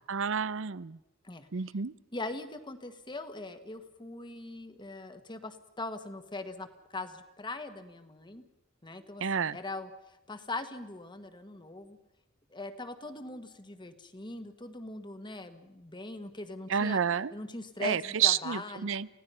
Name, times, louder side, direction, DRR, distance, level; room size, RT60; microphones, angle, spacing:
voice 1, 0.1-1.0 1.5-1.9 9.2-9.6 16.7-17.3 17.8-19.1, right 7 dB, 65° right, 18 dB, 0.6 m, -29 dB
voice 2, 2.1-8.4 8.8-12.0 12.5-17.0 17.3-19.0, left 2 dB, 20° left, 9 dB, 1.5 m, -41 dB
29.0 x 17.5 x 5.7 m, 0.98 s
head